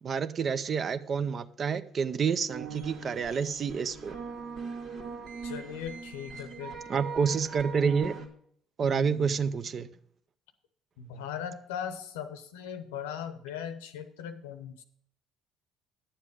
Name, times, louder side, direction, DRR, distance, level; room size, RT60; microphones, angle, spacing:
voice 1, 0.0-4.2 6.9-8.2 8.8-9.9, right 6 dB, 45° right, 13 dB, 0.6 m, -28 dB
sound 1, 2.5-8.3, right 5 dB, 65° right, 1.8 m, -41 dB
voice 2, 5.4-6.8 8.9-9.4 11.0-14.8, left 8 dB, 85° left, 10 dB, 0.8 m, -39 dB
10.0 x 7.3 x 5.0 m, 0.65 s
hypercardioid pair, 60°, 0 cm